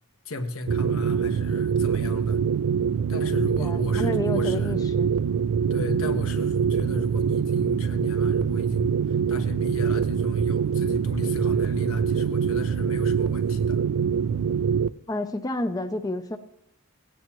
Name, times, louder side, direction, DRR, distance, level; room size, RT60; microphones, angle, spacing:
voice 1, 0.2-2.4 3.1-4.8 5.7-13.8, left 2 dB, 65° left, 1.2 m, -35 dB
sound 1, 0.7-14.9, right 7 dB, 70° right, 0.3 m, -24 dB
voice 2, 3.6-5.1 15.1-16.4, left 2 dB, 15° left, 0.4 m, -30 dB
17.5 x 9.3 x 3.0 m
head